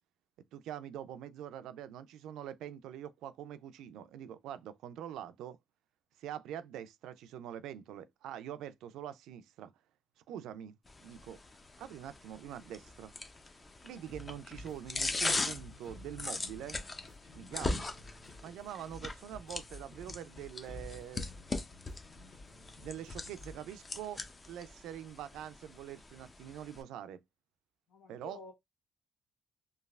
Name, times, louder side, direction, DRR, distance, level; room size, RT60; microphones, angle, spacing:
voice 1, 0.5-5.6 6.2-9.7 10.3-10.7 11.0-11.4 11.8-13.1 13.8-16.8 17.3-17.9 18.4-21.3 22.8-27.2 28.1-28.4, right 10 dB, 85° right, 0.3 m, -44 dB
sound 1, 10.9-26.8, left 3 dB, 30° left, 0.5 m, -41 dB
sound 2, 14.1-23.6, left 1 dB, 55° left, 1.6 m, -53 dB
voice 2, 27.9-28.5, left 4 dB, 85° left, 0.8 m, -51 dB
3.1 x 2.3 x 2.3 m
cardioid pair, 90°, 0 cm